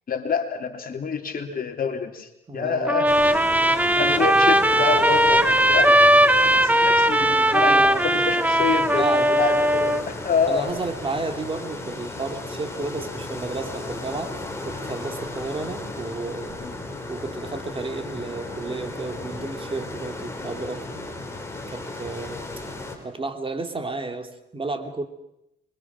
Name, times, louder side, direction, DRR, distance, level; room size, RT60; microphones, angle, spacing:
voice 1, 0.1-3.1 4.0-6.1 6.4-10.7 16.6-16.7, left 5 dB, 45° left, 4 dB, 3.3 m, -27 dB
voice 2, 2.5-3.0 7.5-8.1 8.9-9.5 10.5-14.4 14.6-16.6 17.1-21.1 21.7-22.4 23.0-25.1, right 3 dB, 25° right, 6 dB, 2.8 m, -32 dB
Trumpet, 2.9-10.0, right 1 dB, 10° right, 1.5 m, -18 dB
sound 1, 3.1-23.0, left 2 dB, 15° left, 5.3 m, -35 dB
27.5 x 24.0 x 6.2 m, 0.83 s
cardioid pair, 90°, 20 cm